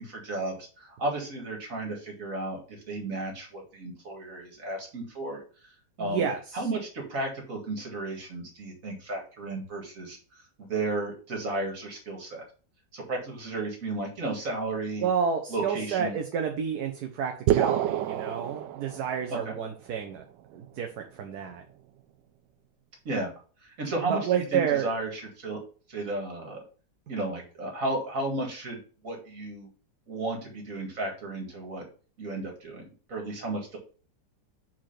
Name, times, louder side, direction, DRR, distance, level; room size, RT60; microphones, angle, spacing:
voice 1, 0.0-5.4 6.0-6.3 6.5-10.2 10.6-12.4 12.9-15.0 15.5-16.2 19.3-19.5 23.0-23.3 23.8-25.6 25.9-26.6 27.1-28.8 29.0-29.7 30.1-31.8 32.2-33.8, right 2 dB, 50° right, 1 dB, 2.3 m, -33 dB
voice 2, 6.0-6.6 15.0-20.2 20.5-21.6 24.1-24.9, right 7 dB, 65° right, 4 dB, 1.3 m, -30 dB
sound 1, 17.5-19.4, right 12 dB, 85° right, 1.3 m, -27 dB
5.0 x 4.4 x 5.8 m, 0.38 s
omnidirectional pair, 1.9 m